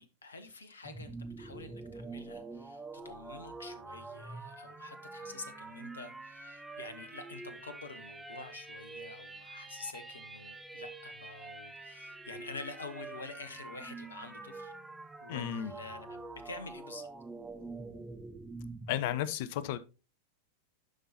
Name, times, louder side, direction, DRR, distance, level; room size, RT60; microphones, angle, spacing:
voice 1, 0.0-14.7 15.2-17.1, left 3 dB, 70° left, 0.9 m, -48 dB
sound 1, 0.8-19.0, right 3 dB, 10° right, 0.8 m, -46 dB
voice 2, 15.3-15.7 18.9-19.8, left 11 dB, 50° left, 0.6 m, -33 dB
11.0 x 5.4 x 2.8 m
figure-of-eight pair, 90°, 0 cm